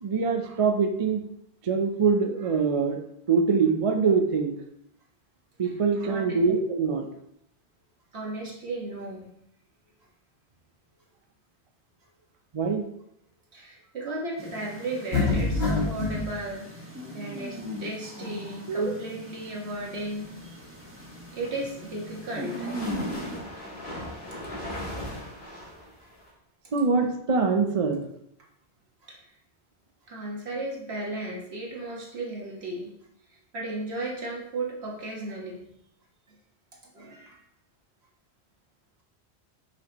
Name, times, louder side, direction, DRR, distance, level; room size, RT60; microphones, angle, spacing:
voice 1, 0.0-1.2 1.6-3.0 3.3-4.5 5.6-7.1 12.5-12.8 18.7-18.9 26.7-28.0, right 5 dB, 40° right, 4 dB, 0.6 m, -24 dB
voice 2, 8.1-9.3 13.5-16.8 17.1-20.6 21.3-23.1 29.0-29.3 30.1-32.9 33.3-35.6 36.9-37.4, right 2 dB, 75° right, -3 dB, 1.7 m, -35 dB
sound 1, 14.4-23.4, equal, 10° right, 1.3 m, -39 dB
sound 2, 15.1-16.2, left 3 dB, 85° left, 2.1 m, -24 dB
sound 3, 21.2-26.3, left 1 dB, 50° left, 2.0 m, -39 dB
6.2 x 5.9 x 2.9 m, 0.73 s
omnidirectional pair, 1.1 m